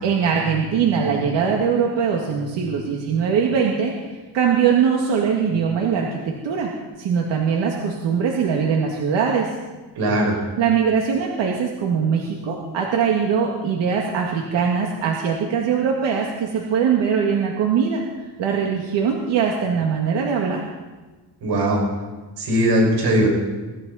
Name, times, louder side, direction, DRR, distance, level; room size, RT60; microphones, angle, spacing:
voice 1, 0.0-9.5 10.6-18.0 18.4-20.6, right 6 dB, 90° right, 0 dB, 2.2 m, -21 dB
voice 2, 10.0-10.4 21.4-21.8 22.4-23.3, right 1 dB, 60° right, -1 dB, 6.0 m, -19 dB
24.0 x 14.0 x 4.2 m, 1.2 s
cardioid pair, 150°, 42 cm